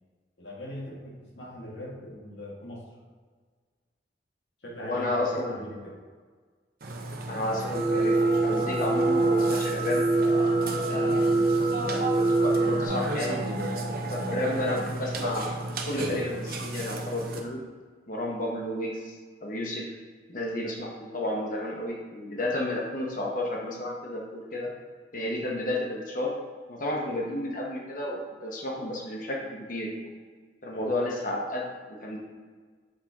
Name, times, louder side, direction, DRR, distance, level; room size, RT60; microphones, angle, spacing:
voice 1, 0.4-3.1 4.6-5.9 11.0-11.3 30.7-30.9, equal, 80° left, -4 dB, 1.9 m, -41 dB
voice 2, 4.8-5.9 7.3-10.6 10.9-11.2 11.9-13.4 14.1-15.6 15.8-17.6 18.1-19.1 19.4-19.8 20.3-24.7 25.1-26.3 26.7-30.1 30.6-32.2, left 1 dB, 50° left, -1 dB, 1.1 m, -32 dB
Burping eructation, 6.8-17.4, right 1 dB, 55° right, 0.8 m, -33 dB
sound 1, 7.7-12.9, right 2 dB, 40° right, 1.2 m, -24 dB
7.5 x 4.4 x 3.6 m, 1.5 s
head